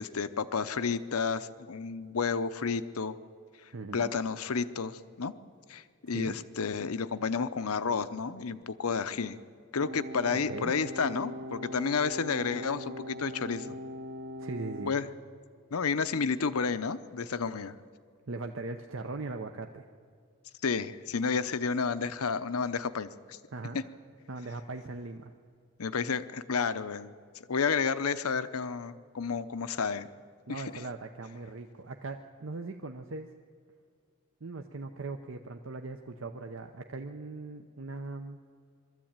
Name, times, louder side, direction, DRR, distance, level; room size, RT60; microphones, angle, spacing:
voice 1, 0.0-3.1 3.6-5.3 5.7-9.4 9.7-13.8 14.9-15.1 15.7-17.8 20.6-23.4 23.7-23.8 25.8-30.1 30.5-30.6, left 5 dB, 90° left, 13 dB, 0.7 m, -31 dB
voice 2, 3.7-4.1 6.1-6.4 10.5-10.7 14.4-14.9 18.3-19.9 23.5-23.8 24.3-25.3 30.5-33.3 34.4-38.4, right 3 dB, 65° right, 5 dB, 0.8 m, -39 dB
sound 1, 9.8-14.9, left 1 dB, 50° right, 1.1 m, -41 dB
22.0 x 13.5 x 8.8 m, 2.1 s
head